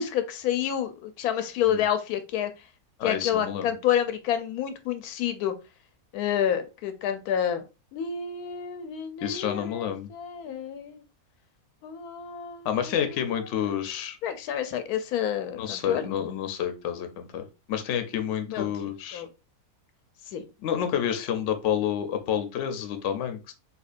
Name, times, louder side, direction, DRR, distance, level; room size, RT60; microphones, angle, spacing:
voice 1, 0.0-2.5 3.0-5.5 6.1-7.6 7.9-11.0 11.8-13.2 13.6-13.7 14.2-16.1 18.5-19.3 20.3-20.4, left 9 dB, 90° left, 10 dB, 1.1 m, -29 dB
voice 2, 3.0-3.7 9.2-10.1 12.6-14.2 15.6-19.2 20.6-23.5, left 9 dB, 65° left, 8 dB, 0.8 m, -29 dB
4.3 x 2.8 x 2.4 m, 0.29 s
omnidirectional pair, 1.5 m